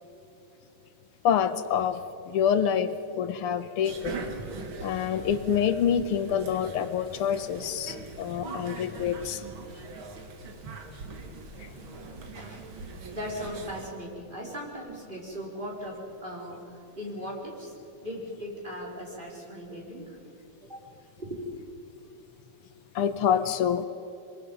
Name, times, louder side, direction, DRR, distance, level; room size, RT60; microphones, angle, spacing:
voice 1, 1.2-2.0 2.3-4.2 4.8-9.4 23.0-23.8, left 8 dB, 85° left, 11 dB, 1.8 m, -26 dB
sound 1, 3.8-13.9, right 4 dB, 65° right, 2.4 m, -41 dB
voice 2, 12.3-12.7 13.1-17.7 18.0-20.2 20.6-20.8 21.2-21.5, equal, 20° right, -3 dB, 4.6 m, -38 dB
25.5 x 22.5 x 5.4 m, 2.9 s
omnidirectional pair, 2.4 m